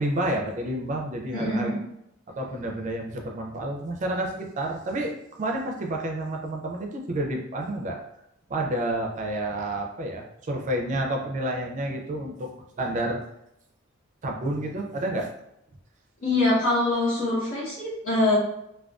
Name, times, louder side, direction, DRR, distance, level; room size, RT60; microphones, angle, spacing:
voice 1, 0.0-1.7 2.3-8.0 8.5-12.5 12.8-13.2 14.2-15.3, right 1 dB, 40° right, 2 dB, 0.4 m, -29 dB
voice 2, 1.3-1.8 16.2-18.4, left 2 dB, 85° left, -6 dB, 1.1 m, -24 dB
2.4 x 2.2 x 2.3 m, 0.79 s
head